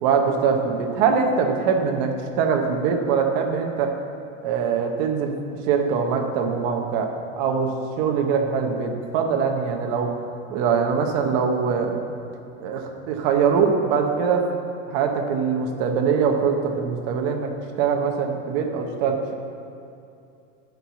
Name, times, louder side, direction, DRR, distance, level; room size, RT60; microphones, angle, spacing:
voice 1, 0.0-3.9 4.4-5.3 5.7-7.7 8.0-10.1 10.5-12.0 12.6-14.4 14.9-17.5 17.8-19.3, right 6 dB, 35° right, 3 dB, 0.8 m, -22 dB
11.0 x 4.7 x 6.9 m, 2.5 s
supercardioid pair, 180°, 39 cm